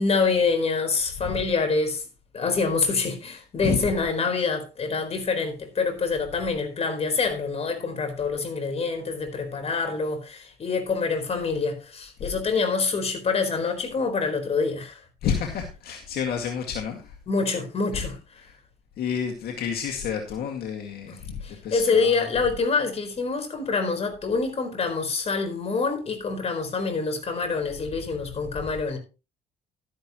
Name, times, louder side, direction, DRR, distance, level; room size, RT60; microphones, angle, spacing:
voice 1, 0.0-2.0 2.3-15.0 17.3-18.4 21.1-21.2 21.4-29.0, left 4 dB, 35° left, 4.3 m, -26 dB
voice 2, 15.2-17.2 17.9-18.0 18.4-18.5 19.0-22.3, left 7 dB, 65° left, 2.1 m, -30 dB
12.5 x 11.0 x 3.0 m
cardioid pair, 110°, 17 cm